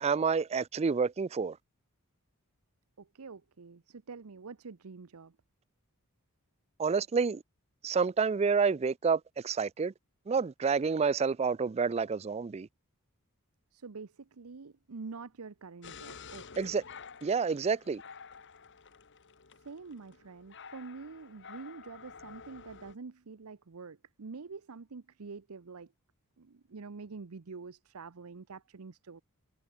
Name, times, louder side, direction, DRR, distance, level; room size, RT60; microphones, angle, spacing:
voice 1, 0.0-1.6 6.8-7.4 7.8-9.9 10.3-12.7 16.6-16.8 17.2-18.0, right 5 dB, 30° right, 0.3 m, -29 dB
voice 2, 3.0-5.3 13.7-16.7 19.6-25.9 26.4-29.2, right 4 dB, 80° right, 0.7 m, -46 dB
sound 1, 15.8-23.0, left 5 dB, 55° left, 1.6 m, -51 dB
head